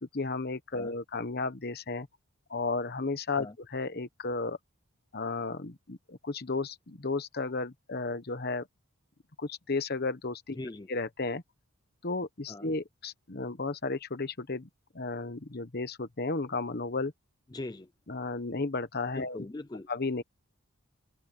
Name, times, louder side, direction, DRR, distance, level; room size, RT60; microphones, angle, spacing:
voice 1, 0.0-2.1 2.5-4.6 5.1-8.7 9.4-10.6 10.9-11.4 12.0-14.7 14.9-17.1 18.1-19.4 19.9-20.2, left 3 dB, 45° left, 1.1 m, -33 dB
voice 2, 10.5-10.9 12.5-12.7 17.5-17.9 19.1-19.9, left 2 dB, 20° left, 0.4 m, -41 dB
open air
head